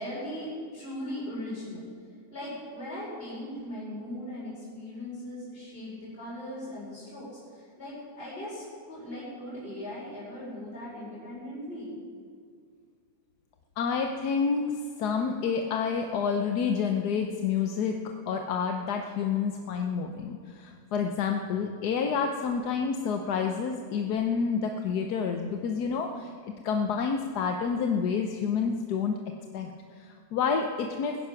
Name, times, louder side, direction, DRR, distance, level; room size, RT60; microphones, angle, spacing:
voice 1, 0.0-1.9 2.3-12.0, left 1 dB, 35° left, -8 dB, 4.9 m, -39 dB
voice 2, 13.8-14.7 15.0-18.0 18.3-29.2 29.5-29.7 30.0-31.2, left 6 dB, 90° left, 4 dB, 1.4 m, -29 dB
20.0 x 10.5 x 5.8 m, 2.1 s
omnidirectional pair, 1.7 m